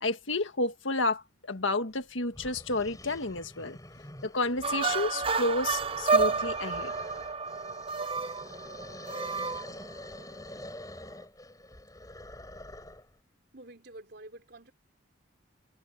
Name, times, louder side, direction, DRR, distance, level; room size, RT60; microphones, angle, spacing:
voice 1, 0.0-3.8 4.2-6.9, left 2 dB, 75° left, 1.7 m, -31 dB
sound 1, 1.9-2.0 2.3-13.1, left 1 dB, 20° left, 7.2 m, -47 dB
sound 2, 4.6-10.2, right 4 dB, 25° right, 0.7 m, -30 dB
voice 2, 13.5-14.7, right 1 dB, 55° right, 4.0 m, -48 dB
head